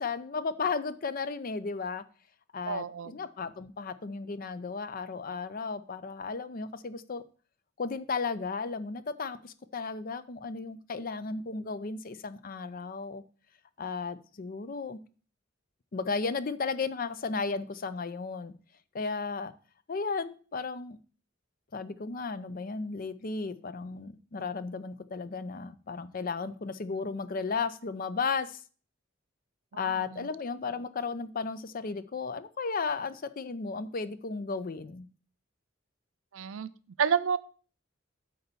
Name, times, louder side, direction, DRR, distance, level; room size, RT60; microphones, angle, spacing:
voice 1, 0.0-2.0 2.5-7.2 7.8-13.2 13.8-15.0 15.9-18.5 18.9-19.5 19.9-21.0 21.7-28.6 29.8-35.1, left 4 dB, 45° left, 14 dB, 0.5 m, -34 dB
voice 2, 2.7-3.2 29.7-30.3 36.3-36.7 37.0-37.4, right 7 dB, 80° right, 15 dB, 0.5 m, -30 dB
8.5 x 4.0 x 6.9 m, 0.40 s
head